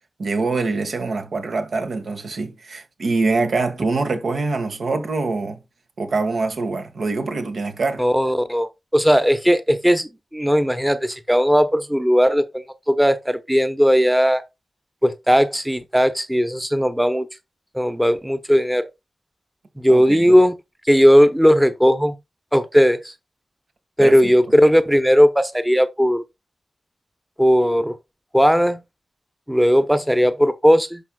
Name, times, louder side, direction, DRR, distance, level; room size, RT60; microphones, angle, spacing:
voice 1, 0.2-5.6 6.0-8.0 19.9-20.3 24.0-24.3, right 3 dB, 80° right, 1.5 m, -24 dB
voice 2, 8.0-14.4 15.0-17.3 17.7-18.9 19.8-20.5 20.9-22.2 22.5-23.1 24.0-26.2 27.4-28.0 28.3-28.8 29.5-31.0, equal, 5° right, 0.8 m, -17 dB
11.0 x 5.6 x 2.3 m
wide cardioid pair, 70°, 0 cm